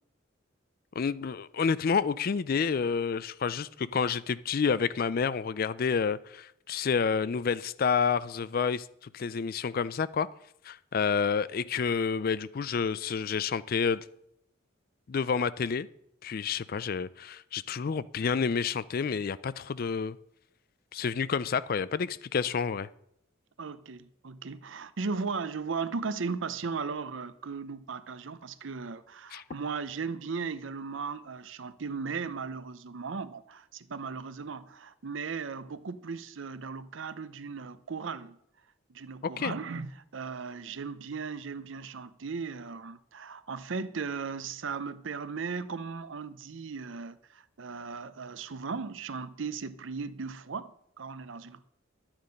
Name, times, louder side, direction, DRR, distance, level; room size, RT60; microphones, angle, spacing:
voice 1, 1.0-8.8 9.1-10.3 10.6-14.0 15.1-15.9 16.2-20.2 20.9-22.9 29.3-29.4 39.4-39.5, left 6 dB, 45° left, 0.4 m, -29 dB
voice 2, 23.6-38.4 38.9-51.7, right 5 dB, 70° right, 0.6 m, -37 dB
11.5 x 8.8 x 5.2 m
head